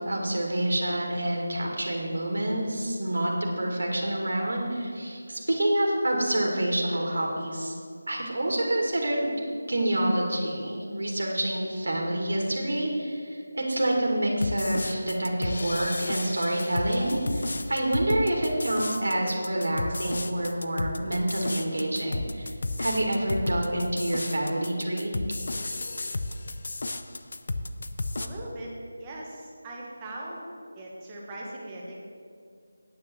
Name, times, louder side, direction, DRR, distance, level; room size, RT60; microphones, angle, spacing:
voice 1, 0.1-3.3 3.6-7.7 8.1-9.3 9.7-25.1, right 1 dB, 70° right, -1 dB, 2.2 m, -27 dB
sound 1, 14.4-28.3, left 2 dB, 45° left, 0.5 m, -33 dB
voice 2, 28.2-28.7 29.0-30.4 30.7-32.1, right 1 dB, 10° right, -4 dB, 1.0 m, -40 dB
9.5 x 6.2 x 7.4 m, 2.3 s
figure-of-eight pair, 180°, 0 cm